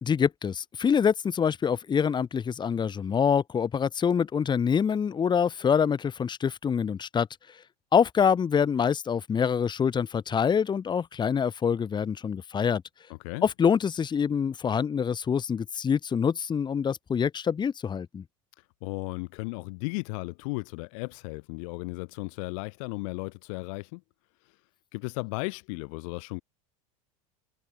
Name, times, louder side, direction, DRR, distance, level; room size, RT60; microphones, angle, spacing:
voice 1, 0.0-7.3 7.9-12.8 13.4-18.2, left 7 dB, 25° left, 1.6 m, -25 dB
voice 2, 13.1-13.4 18.8-24.0 24.9-26.4, left 30 dB, 65° left, 2.2 m, -35 dB
hypercardioid pair, 95°, 18 cm